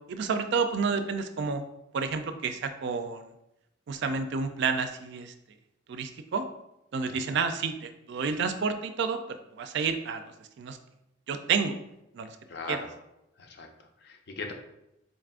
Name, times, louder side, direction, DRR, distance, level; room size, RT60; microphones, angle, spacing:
voice 1, 0.1-1.6 1.9-3.3 3.9-5.3 5.9-6.4 6.9-10.2 10.6-10.8 11.3-11.8 12.1-12.4 12.7-12.8, right 5 dB, 60° right, 8 dB, 0.3 m, -30 dB
voice 2, 12.5-12.9 13.4-14.5, left 3 dB, 55° left, 4 dB, 0.5 m, -40 dB
4.0 x 2.4 x 3.5 m, 0.87 s
head